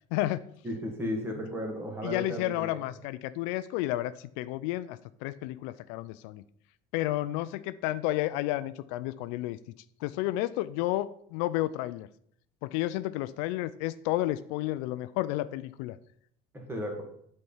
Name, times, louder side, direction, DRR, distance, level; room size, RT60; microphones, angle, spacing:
voice 1, 0.1-0.4 2.0-6.4 6.9-9.6 10.0-12.1 12.6-16.0, left 16 dB, 75° left, 15 dB, 0.4 m, -31 dB
voice 2, 0.6-2.8 16.5-17.0, equal, 10° right, 2 dB, 1.7 m, -34 dB
7.8 x 4.3 x 5.5 m, 0.68 s
cardioid pair, 140°, 18 cm